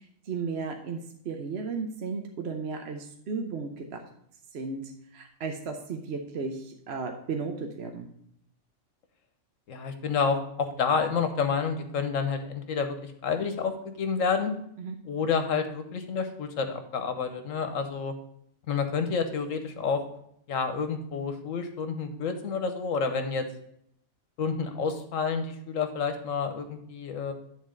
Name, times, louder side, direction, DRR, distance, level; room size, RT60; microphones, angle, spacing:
voice 1, 0.3-4.0 4.5-8.1 14.8-15.0, right 4 dB, 60° right, 4 dB, 1.0 m, -34 dB
voice 2, 9.7-14.5 15.0-18.1 18.7-20.0 20.5-23.4 24.4-27.3, left 5 dB, 85° left, 7 dB, 1.3 m, -29 dB
9.6 x 4.0 x 5.1 m, 0.70 s
omnidirectional pair, 1.3 m